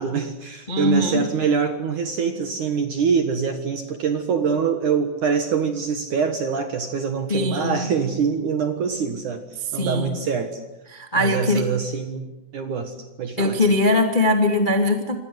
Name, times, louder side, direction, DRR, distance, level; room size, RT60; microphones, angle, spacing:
voice 1, 0.0-9.5 9.7-10.6 11.1-13.6, right 6 dB, 60° right, 7 dB, 2.1 m, -24 dB
voice 2, 0.7-1.2 7.3-7.8 9.7-10.2 10.9-11.6 13.4-15.2, left 2 dB, 45° left, 4 dB, 0.6 m, -21 dB
27.5 x 24.5 x 8.0 m, 0.96 s
omnidirectional pair, 5.7 m